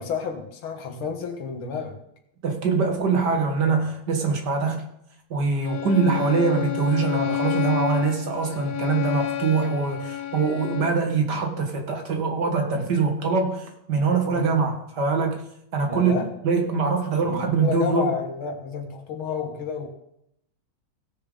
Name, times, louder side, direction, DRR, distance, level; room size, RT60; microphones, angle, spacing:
voice 1, 0.0-2.0 14.3-14.5 15.9-16.3 17.2-19.9, left 6 dB, 85° left, 4 dB, 2.3 m, -30 dB
voice 2, 2.4-4.8 5.3-15.4 15.7-16.1 16.4-18.1, right 4 dB, 55° right, 4 dB, 2.1 m, -23 dB
Bowed string instrument, 5.6-11.1, left 13 dB, 70° left, 1.6 m, -29 dB
17.0 x 6.8 x 3.9 m, 0.76 s
omnidirectional pair, 2.2 m